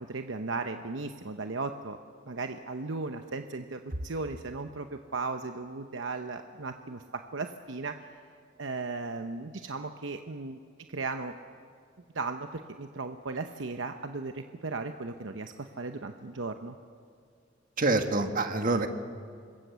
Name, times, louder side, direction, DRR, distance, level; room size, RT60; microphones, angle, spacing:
voice 1, 0.1-2.0 2.3-8.0 8.6-10.6 10.9-11.3 12.1-16.7, right 3 dB, 80° right, 6 dB, 0.9 m, -36 dB
voice 2, 17.8-18.9, right 2 dB, 45° right, 6 dB, 1.5 m, -26 dB
26.0 x 21.5 x 7.0 m, 2.3 s
head